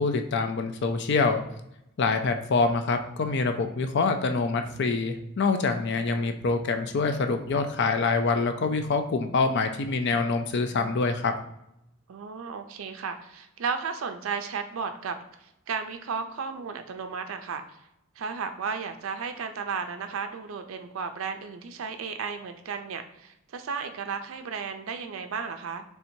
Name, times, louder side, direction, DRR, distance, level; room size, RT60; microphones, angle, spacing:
voice 1, 0.0-1.4 2.0-11.3, left 4 dB, 55° left, 7 dB, 0.5 m, -25 dB
voice 2, 12.1-17.8 18.2-25.8, right 5 dB, 65° right, 7 dB, 0.4 m, -34 dB
4.3 x 3.4 x 2.7 m, 0.82 s
head